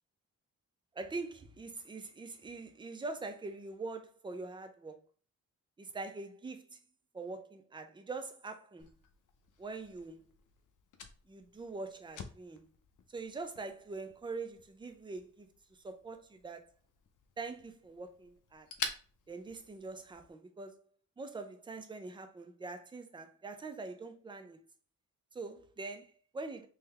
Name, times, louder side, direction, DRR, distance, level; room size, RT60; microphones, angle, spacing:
voice 1, 0.9-5.0 5.8-6.8 7.1-8.9 9.6-10.2 11.3-12.7 13.1-15.5 15.8-16.7 17.4-18.7 19.3-20.8 21.2-24.6 25.3-26.7, right 3 dB, 15° right, 0.3 m, -43 dB
Fire, 8.8-20.3, left 5 dB, 75° left, 0.6 m, -49 dB
3.7 x 2.8 x 3.2 m
wide cardioid pair, 175°, 32 cm